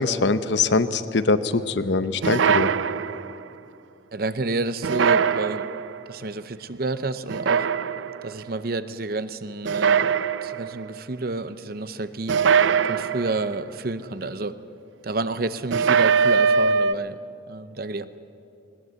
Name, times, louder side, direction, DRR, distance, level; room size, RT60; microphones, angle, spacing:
voice 1, 0.0-2.7, left 3 dB, 75° left, 12 dB, 0.8 m, -22 dB
sound 1, 2.2-3.4 4.8-6.0 7.3-8.3 9.6-10.8 12.3-13.6 15.7-16.9, right 6 dB, 90° right, 0.4 m, -21 dB
voice 2, 4.1-5.7 6.1-7.7 8.2-14.6 15.0-17.2 17.5-18.1, right 2 dB, 50° right, 13 dB, 0.7 m, -30 dB
20.0 x 19.0 x 8.0 m, 2.8 s
head